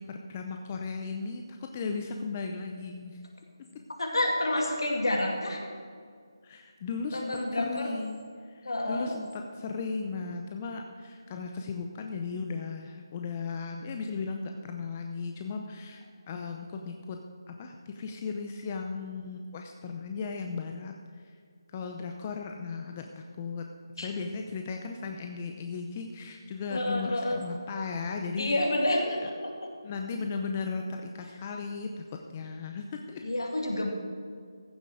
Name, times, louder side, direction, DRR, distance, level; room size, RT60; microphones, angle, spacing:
voice 1, 0.0-3.2 6.4-17.2 17.5-21.3 21.7-23.6 24.0-28.6 29.2-29.3 29.8-32.0 32.3-33.2, left 4 dB, 25° left, 3 dB, 0.6 m, -36 dB
voice 2, 4.0-5.6 7.1-8.0 8.6-9.1 24.0-24.1 26.7-27.4 28.4-29.5 33.2-33.9, left 1 dB, 70° left, 0 dB, 2.5 m, -29 dB
15.0 x 7.6 x 5.0 m, 2.1 s
figure-of-eight pair, 160°, 2 cm